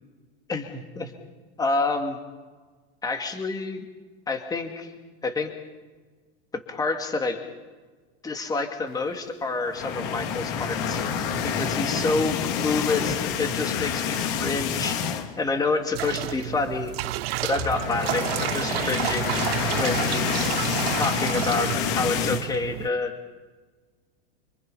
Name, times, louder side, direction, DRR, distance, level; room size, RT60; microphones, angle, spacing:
voice 1, 0.5-1.1 1.6-2.1 3.0-3.9 4.3-4.9 5.2-5.5 6.7-7.4 8.2-11.0 11.4-15.0 15.4-16.9 17.4-19.4 19.8-20.5 21.0-23.1, left 3 dB, 10° left, 5 dB, 2.3 m, -28 dB
sound 1, 9.7-15.5 15.8-16.0 16.3-16.4 17.4-22.5, left 7 dB, 55° left, 2.6 m, -28 dB
sound 2, 15.9-22.9, right 16 dB, 70° right, 0.8 m, -30 dB
27.0 x 24.5 x 5.6 m, 1.4 s
supercardioid pair, 150°, 32 cm